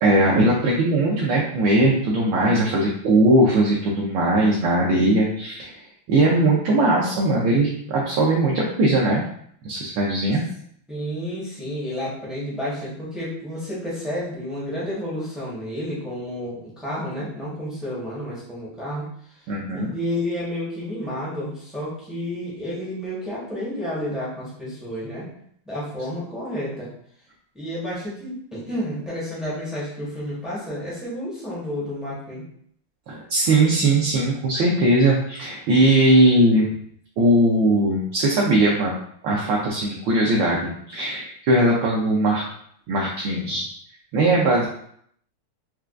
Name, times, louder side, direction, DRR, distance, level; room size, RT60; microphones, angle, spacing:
voice 1, 0.0-5.7 6.1-9.2 9.6-10.4 19.5-19.9 33.1-36.7 37.2-39.0 39.2-42.4 42.9-43.7 44.1-44.7, right 1 dB, 75° right, -3 dB, 1.2 m, -19 dB
voice 2, 10.9-19.5 19.7-25.3 25.7-26.9 27.5-32.4, equal, ahead, -8 dB, 0.4 m, -31 dB
4.5 x 2.3 x 2.4 m, 0.66 s
omnidirectional pair, 2.3 m